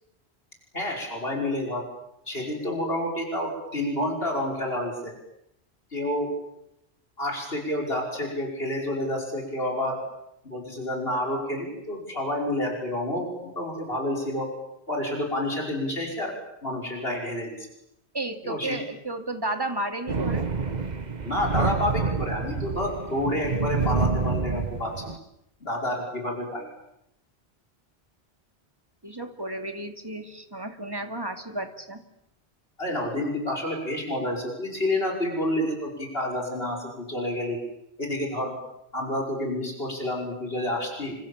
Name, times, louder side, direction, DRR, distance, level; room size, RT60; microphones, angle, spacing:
voice 1, 0.7-1.8 2.3-5.1 5.9-6.3 7.2-10.0 10.4-14.5 14.9-16.3 16.6-17.7 18.4-18.8 21.2-25.1 25.6-26.7 32.8-37.6 38.0-38.5 38.9-41.2, left 1 dB, 65° left, 0 dB, 5.9 m, -29 dB
voice 2, 18.1-20.5 29.0-32.0, right 2 dB, 20° right, 6 dB, 2.5 m, -33 dB
Thunder, 20.1-25.2, right 4 dB, 40° right, 1.4 m, -28 dB
29.5 x 25.5 x 7.4 m, 0.81 s
omnidirectional pair, 1.1 m